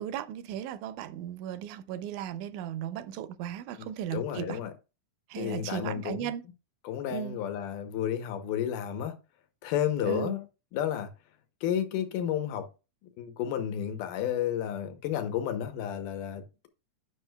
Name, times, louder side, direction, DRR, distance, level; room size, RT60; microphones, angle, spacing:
voice 1, 0.0-4.6 5.3-6.4 7.1-7.4 10.0-10.4, right 10 dB, 80° right, 1.9 m, -36 dB
voice 2, 3.8-4.7 5.4-6.3 6.8-9.2 9.6-10.4 10.7-11.1 11.6-12.7 13.2-16.7, left 10 dB, 85° left, 2.4 m, -32 dB
9.9 x 6.3 x 2.2 m
omnidirectional pair, 3.6 m